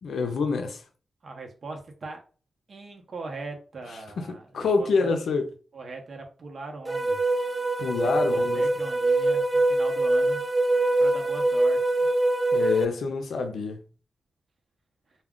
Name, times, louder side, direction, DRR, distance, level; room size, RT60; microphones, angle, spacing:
voice 1, 0.0-0.8 4.3-5.5 7.8-8.6 12.5-13.8, left 4 dB, 90° left, 0.5 m, -26 dB
voice 2, 1.2-2.2 2.7-5.2 5.7-7.2 7.8-10.4 11.0-12.1, right 3 dB, 60° right, 0.8 m, -40 dB
sound 1, 6.9-12.8, right 2 dB, 20° right, 0.3 m, -23 dB
2.3 x 2.3 x 3.5 m
cardioid pair, 80°, 0 cm